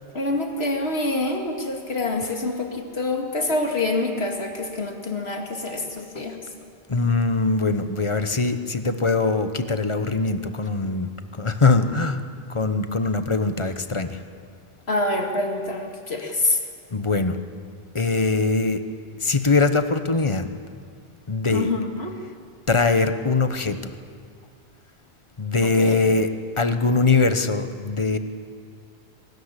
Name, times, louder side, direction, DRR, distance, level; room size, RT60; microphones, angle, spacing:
voice 1, 0.1-6.4 14.9-16.6 21.5-22.2 25.6-26.0, left 2 dB, 80° left, 2 dB, 2.4 m, -26 dB
voice 2, 6.9-11.1 11.4-12.2 12.5-14.1 16.9-17.4 17.9-18.8 19.2-20.5 21.3-21.7 22.7-23.9 25.4-26.3 26.6-28.2, left 3 dB, 30° left, 9 dB, 1.0 m, -22 dB
23.0 x 13.5 x 9.8 m, 2.1 s
omnidirectional pair, 1.1 m